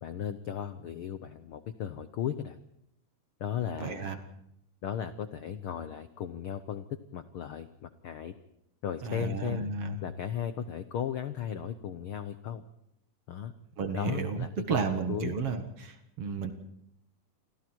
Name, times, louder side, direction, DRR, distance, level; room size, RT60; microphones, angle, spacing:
voice 1, 0.0-2.6 3.4-4.1 4.8-6.9 7.1-8.3 8.8-9.7 10.0-12.6 13.3-13.5 13.9-15.4, left 9 dB, 70° left, 10 dB, 1.3 m, -36 dB
voice 2, 3.8-4.2 9.0-10.0 13.8-16.5, right 5 dB, 55° right, 7 dB, 2.4 m, -32 dB
29.5 x 24.5 x 4.6 m, 0.79 s
omnidirectional pair, 3.6 m